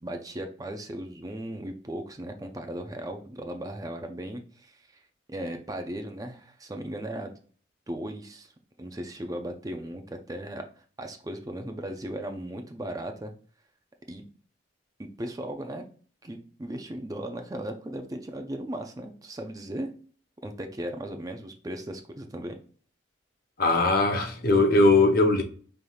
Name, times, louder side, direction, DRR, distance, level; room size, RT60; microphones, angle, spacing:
voice 1, 0.0-4.8 5.3-7.3 7.9-8.5 8.8-10.6 11.0-13.3 14.1-14.2 15.0-15.8 16.2-19.9 20.4-22.6, right 1 dB, 20° right, 0.5 m, -37 dB
voice 2, 23.6-25.4, left 2 dB, 50° left, 0.7 m, -20 dB
5.7 x 3.3 x 2.3 m
head